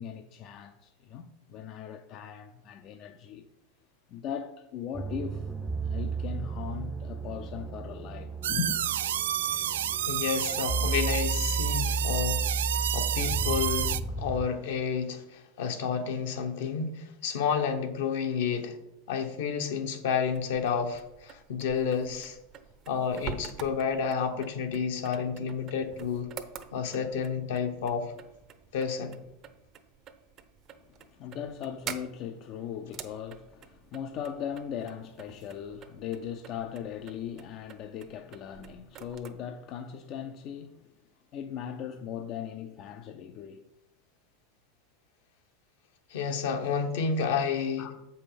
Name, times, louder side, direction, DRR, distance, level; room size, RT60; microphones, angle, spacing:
voice 1, 0.0-3.5 4.1-5.5 5.8-8.8 30.8-40.9 41.3-43.6 47.8-48.0, left 8 dB, 50° left, 0.5 m, -39 dB
sound 1, 4.9-14.5, right 3 dB, 10° right, 0.6 m, -33 dB
sound 2, 8.4-14.0, right 11 dB, 85° right, 0.3 m, -30 dB
voice 2, 10.0-12.4 12.7-18.8 19.1-22.4 22.9-26.3 26.7-28.1 28.7-29.2 46.1-48.0, left 6 dB, 75° left, 1.2 m, -30 dB
sound 3, 20.2-39.3, right 7 dB, 40° right, 0.8 m, -47 dB
7.4 x 5.6 x 5.1 m
hypercardioid pair, 110°, 0 cm